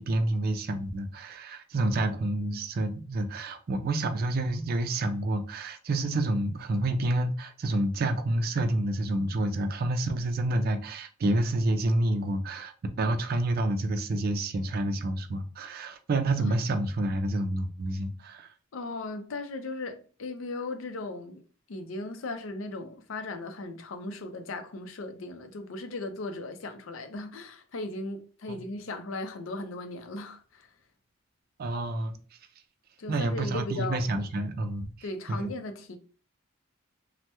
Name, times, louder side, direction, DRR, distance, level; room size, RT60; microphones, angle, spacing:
voice 1, 0.0-18.5 28.5-28.6 31.6-32.2 33.1-34.9 35.3-35.5, right 1 dB, 50° right, 0.4 m, -28 dB
voice 2, 18.7-21.4 21.7-30.7 33.0-34.1 35.0-36.0, left 2 dB, 70° left, 0.5 m, -37 dB
3.3 x 2.1 x 2.9 m
head